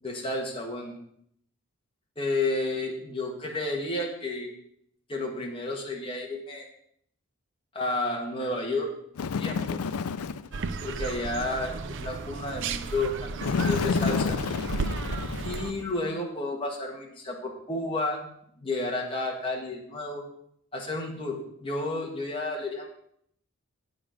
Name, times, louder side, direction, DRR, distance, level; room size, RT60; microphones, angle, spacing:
voice 1, 0.0-1.0 2.2-4.5 5.1-6.7 7.7-8.9 9.2-9.8 10.8-13.3 13.6-14.4 15.4-18.3 18.6-20.2 20.7-22.9, left 2 dB, 25° left, 0 dB, 1.5 m, -31 dB
Bird, 9.2-10.6 13.4-15.9, left 5 dB, 80° left, 0.4 m, -29 dB
sound 1, 10.5-15.7, right 4 dB, 55° right, 0.5 m, -34 dB
8.9 x 7.0 x 5.1 m, 0.69 s
head